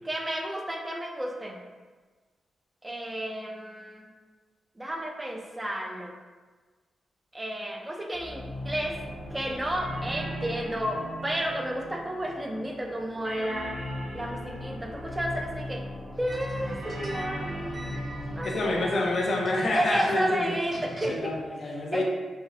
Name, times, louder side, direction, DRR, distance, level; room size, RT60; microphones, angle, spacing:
voice 1, 0.0-1.6 2.8-4.1 4.8-6.1 7.3-9.0 9.3-13.7 14.1-15.8 16.2-17.8 18.4-19.1 19.7-21.3 21.9-22.0, right 1 dB, 15° right, 1 dB, 0.3 m, -32 dB
sound 1, 8.1-21.4, left 1 dB, 50° right, 0.9 m, -40 dB
sound 2, 8.6-12.9 13.2-16.1 16.5-18.5, right 1 dB, 80° right, 0.8 m, -41 dB
sound 3, 16.1-21.3, right 1 dB, 5° left, 0.7 m, -44 dB
voice 2, 18.4-20.5 21.1-22.0, left 2 dB, 60° left, 0 dB, 0.4 m, -27 dB
2.6 x 2.1 x 2.4 m, 1.3 s
wide cardioid pair, 120°, 0 cm